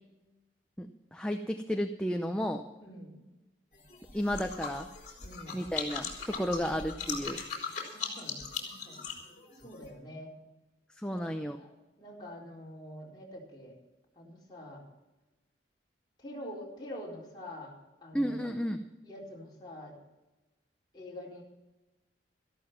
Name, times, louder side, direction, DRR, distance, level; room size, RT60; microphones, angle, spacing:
voice 1, 0.8-2.6 4.1-4.9 5.5-7.4 11.0-11.6 18.1-18.8, equal, 5° left, 4 dB, 0.6 m, -32 dB
voice 2, 2.8-3.2 5.2-6.0 6.3-6.7 7.0-7.3 7.9-9.0 9.6-10.3 11.1-11.3 11.6-13.7 14.2-14.8 16.2-17.7 18.0-18.5 19.0-19.9 20.9-21.4, left 1 dB, 25° left, -4 dB, 4.1 m, -46 dB
sound 1, 3.7-9.9, left 5 dB, 40° left, 3.7 m, -39 dB
14.0 x 12.5 x 5.9 m, 1.0 s
head